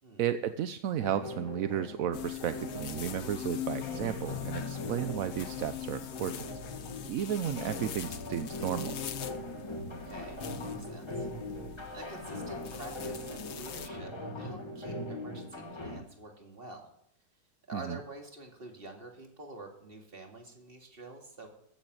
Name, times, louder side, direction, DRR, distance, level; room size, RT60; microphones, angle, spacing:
voice 1, 0.2-6.5 7.1-9.0 17.7-18.0, right 10 dB, 65° right, 11 dB, 0.9 m, -33 dB
sound 1, 1.0-16.0, left 1 dB, 15° left, 1.5 m, -41 dB
sound 2, 2.1-13.9, left 10 dB, 55° left, 0.7 m, -42 dB
voice 2, 10.1-11.3 11.9-16.9 17.7-21.5, right 2 dB, 30° right, 2 dB, 2.5 m, -47 dB
14.5 x 7.2 x 7.8 m, 0.74 s
omnidirectional pair, 1.9 m